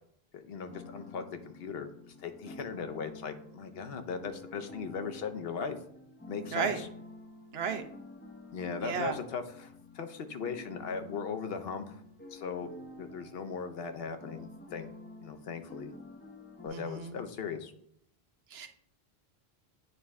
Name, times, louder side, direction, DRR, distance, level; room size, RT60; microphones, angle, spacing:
voice 1, 0.3-5.8 6.3-6.9 8.5-12.0 12.3-12.7 13.0-14.9 15.2-15.9 16.6-17.7, left 5 dB, 70° left, 8 dB, 0.9 m, -38 dB
sound 1, 0.7-16.7, left 2 dB, 15° left, 0.4 m, -50 dB
voice 2, 7.5-7.8 8.8-9.2 16.7-17.2 18.5-18.7, right 6 dB, 75° right, 7 dB, 1.0 m, -33 dB
9.1 x 3.2 x 3.5 m, 0.68 s
omnidirectional pair, 1.0 m